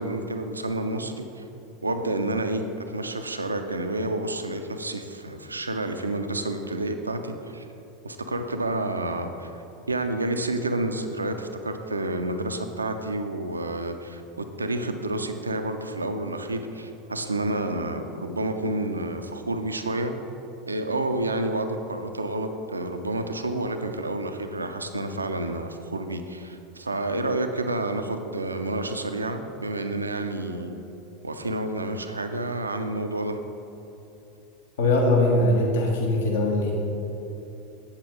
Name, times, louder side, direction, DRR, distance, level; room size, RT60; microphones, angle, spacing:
voice 1, 0.0-1.4 1.8-7.7 8.0-20.1 20.7-30.8 31.2-33.4, right 2 dB, 80° right, 7 dB, 0.5 m, -29 dB
voice 2, 34.8-36.7, left 2 dB, 65° left, 0 dB, 1.2 m, -21 dB
8.2 x 7.2 x 3.9 m, 2.9 s
figure-of-eight pair, 85°, 0 cm